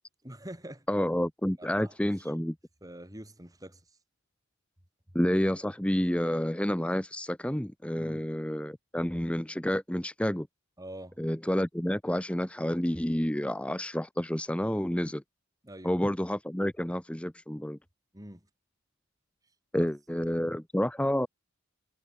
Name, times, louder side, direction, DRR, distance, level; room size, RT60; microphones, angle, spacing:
voice 1, 0.2-0.9 1.6-2.0 2.8-3.8 8.0-8.3 10.8-11.2 15.6-15.9 18.1-18.4 19.7-19.9 20.2-20.6, right 1 dB, 15° right, 5.4 m, -45 dB
voice 2, 0.9-2.6 5.1-10.5 11.2-15.2 15.8-17.8 19.7-21.3, equal, 5° left, 0.7 m, -29 dB
head